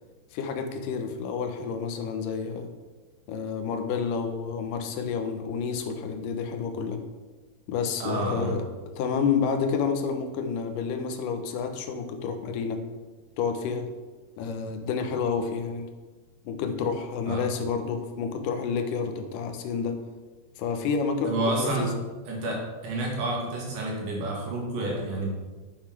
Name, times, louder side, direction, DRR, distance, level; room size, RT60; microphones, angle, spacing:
voice 1, 0.3-2.7 3.3-7.0 7.7-8.7 9.0-12.8 13.4-13.9 14.4-15.9 16.5-20.0 20.6-22.0, left 6 dB, 85° left, 6 dB, 2.5 m, -29 dB
voice 2, 8.0-8.6 17.3-17.5 21.2-21.9 22.3-25.3, right 2 dB, 85° right, -2 dB, 3.7 m, -29 dB
8.4 x 6.0 x 5.8 m, 1.3 s
omnidirectional pair, 3.7 m